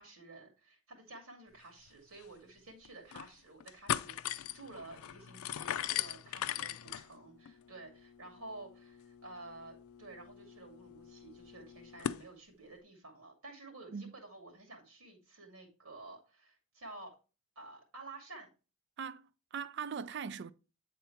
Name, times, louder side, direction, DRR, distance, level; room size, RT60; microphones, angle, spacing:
voice 1, 0.0-17.2 17.6-18.5, right 2 dB, 90° right, 2.3 m, -52 dB
sound 1, 1.9-2.0 2.2-2.3 2.8-3.3 3.6-12.2, left 10 dB, 85° left, 0.4 m, -40 dB
voice 2, 19.0-20.5, right 6 dB, 55° right, 0.4 m, -41 dB
8.7 x 3.8 x 4.4 m
head